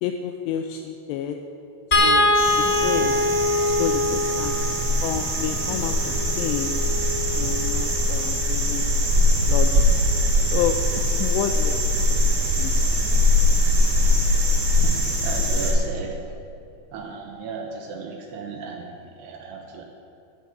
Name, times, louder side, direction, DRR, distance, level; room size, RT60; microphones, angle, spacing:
voice 1, 0.0-1.4 1.9-2.3 2.6-3.2 3.8-4.6 5.0-6.8 7.4-8.9 9.4-9.9 10.5-10.8 11.2-11.8 12.1-12.3 12.6-12.7, left 9 dB, 85° left, 5 dB, 2.5 m, -29 dB
sound 1, 1.9-8.2 9.8-9.9 10.3-10.4, left 1 dB, 30° left, 1.2 m, -24 dB
sound 2, 2.3-15.7, left 1 dB, 40° right, 2.0 m, -22 dB
voice 2, 14.8-16.3 16.9-19.8, right 4 dB, 75° right, 3 dB, 2.6 m, -35 dB
13.0 x 7.8 x 8.3 m, 2.6 s
omnidirectional pair, 5.5 m